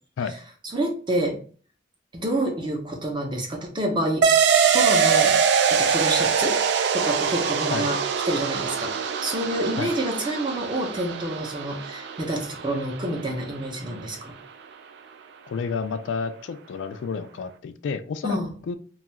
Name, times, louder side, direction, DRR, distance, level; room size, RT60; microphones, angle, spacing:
voice 1, 0.7-1.4 2.1-4.3 4.7-5.4 5.7-8.0 8.3-14.3 18.2-18.5, right 1 dB, 25° right, 2 dB, 0.6 m, -28 dB
sound 1, 4.2-13.2, right 6 dB, 65° right, 0.3 m, -23 dB
voice 2, 15.5-18.4 18.7-18.8, left 5 dB, 75° left, 10 dB, 0.3 m, -30 dB
2.6 x 2.3 x 3.1 m, 0.41 s
head